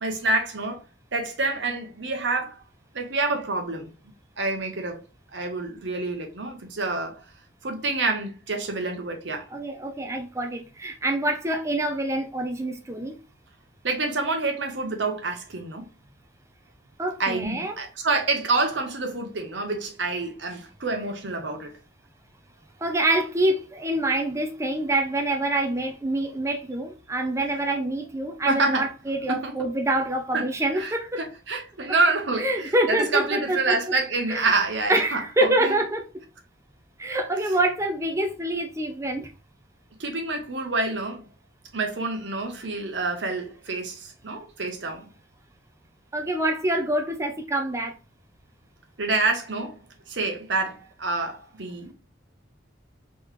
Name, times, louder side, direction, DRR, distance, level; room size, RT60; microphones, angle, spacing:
voice 1, 0.0-0.8 1.1-2.6 2.9-3.9 4.4-5.0 5.3-7.2 7.6-9.4 13.8-15.8 17.2-21.8 28.4-28.9 29.3-29.6 30.3-30.5 30.7-35.7 40.0-41.2 41.7-45.0 49.0-49.8 50.1-51.9, right 3 dB, 75° right, 1.0 m, -27 dB
voice 2, 9.5-13.1 17.0-17.8 22.8-31.2 32.4-33.8 34.3-34.5 34.9-36.0 37.0-39.3 46.1-47.9, right 1 dB, 15° right, 0.6 m, -26 dB
3.4 x 3.1 x 3.2 m
head